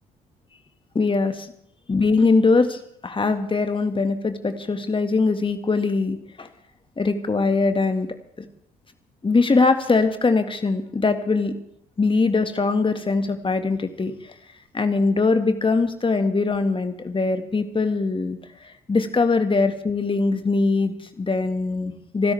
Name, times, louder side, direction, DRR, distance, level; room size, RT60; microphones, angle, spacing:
voice 1, 1.0-1.5 1.9-6.5 7.0-8.1 9.2-11.5 12.0-14.3 14.7-18.4 18.6-22.3, left 3 dB, 25° left, 7 dB, 2.0 m, -22 dB
26.5 x 13.0 x 3.5 m, 0.71 s
figure-of-eight pair, 45°, 20 cm